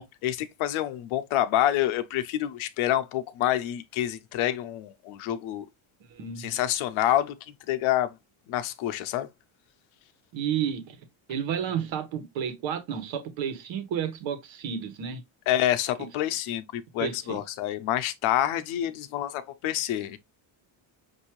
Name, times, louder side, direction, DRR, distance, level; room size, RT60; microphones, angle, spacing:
voice 1, 0.0-5.6 6.4-7.4 7.7-8.1 8.5-9.3 15.5-20.2, left 12 dB, 75° left, 0.8 m, -27 dB
voice 2, 6.1-6.6 10.3-11.0 11.3-15.2 16.0-16.1 17.0-17.4, right 8 dB, 65° right, 1.3 m, -31 dB
6.0 x 2.8 x 3.0 m
cardioid pair, 175°, 49 cm